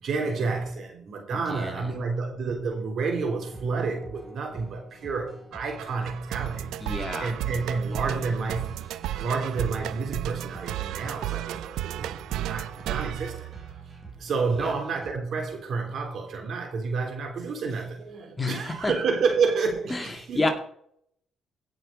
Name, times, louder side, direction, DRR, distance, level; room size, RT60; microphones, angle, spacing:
voice 1, 0.0-6.7 7.2-8.7 9.2-13.5 14.2-20.5, right 4 dB, 65° right, 3 dB, 3.5 m, -29 dB
voice 2, 1.5-1.9 6.8-7.4 14.6-14.7 18.4-18.9 19.9-20.5, left 2 dB, 20° left, 4 dB, 2.2 m, -29 dB
sound 1, 3.4-15.1, right 3 dB, 20° right, 4.9 m, -47 dB
sound 2, 5.5-14.1, right 13 dB, 85° right, 0.5 m, -34 dB
16.0 x 6.1 x 5.1 m, 0.66 s
cardioid pair, 90°, 0 cm